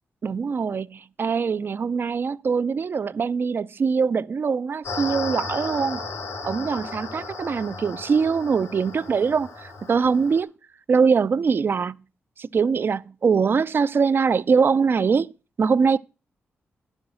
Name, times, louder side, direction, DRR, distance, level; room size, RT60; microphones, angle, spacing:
voice 1, 0.2-6.0 6.4-10.5 10.9-12.0 12.4-15.3 15.6-16.0, right 5 dB, 50° right, 0.4 m, -22 dB
sound 1, 4.8-10.4, left 3 dB, 80° left, 2.9 m, -35 dB
10.0 x 6.3 x 6.2 m
cardioid pair, 60°, 5 cm